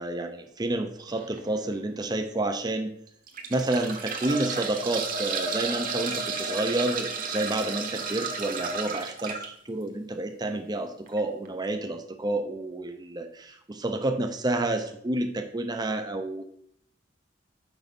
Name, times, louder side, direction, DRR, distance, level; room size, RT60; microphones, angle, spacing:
voice 1, 0.0-2.9 3.5-9.4 9.7-16.4, right 2 dB, 20° right, 5 dB, 0.6 m, -29 dB
sound 1, 1.1-1.4 2.0-2.1 3.1-9.5 11.1-11.2 11.5-11.6, right 4 dB, 45° right, 1.1 m, -32 dB
6.1 x 5.4 x 5.2 m, 0.67 s
head